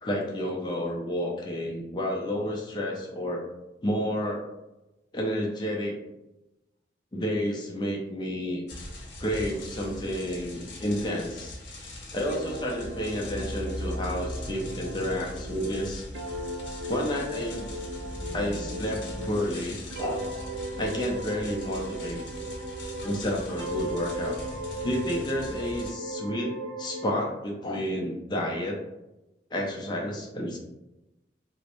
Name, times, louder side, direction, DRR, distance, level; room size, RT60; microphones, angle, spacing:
voice 1, 0.0-3.4 3.8-4.4 5.1-6.0 7.1-8.6 9.2-11.6 12.1-16.0 16.9-17.7 18.3-20.2 20.8-22.2 23.0-24.4 24.8-26.5 26.8-28.8 29.5-30.6, equal, 25° left, -2 dB, 0.4 m, -30 dB
sound 1, 8.7-25.9, left 1 dB, 90° left, 0.6 m, -40 dB
sound 2, 12.3-19.5 19.9-23.3 23.6-27.2, right 1 dB, 70° right, 0.3 m, -37 dB
2.5 x 2.0 x 2.9 m, 0.96 s
head